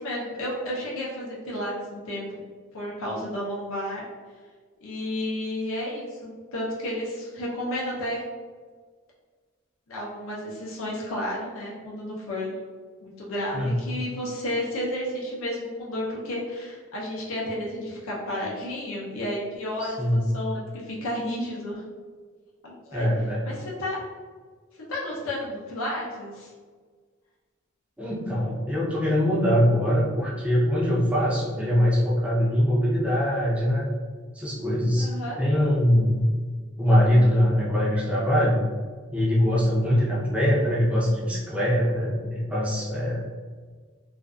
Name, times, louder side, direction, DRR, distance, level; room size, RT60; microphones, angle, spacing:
voice 1, 0.0-2.2 2.7-4.1 4.8-8.2 9.9-12.5 13.0-21.8 22.6-23.1 23.4-24.0 24.9-26.5 35.0-35.4, left 1 dB, 70° left, -4 dB, 0.6 m, -32 dB
voice 2, 19.8-20.2 22.9-23.4 28.0-33.9 34.3-35.1 35.4-36.3 36.8-38.6 39.1-43.2, equal, 5° right, -6 dB, 0.5 m, -22 dB
2.5 x 2.2 x 2.3 m, 1.5 s
head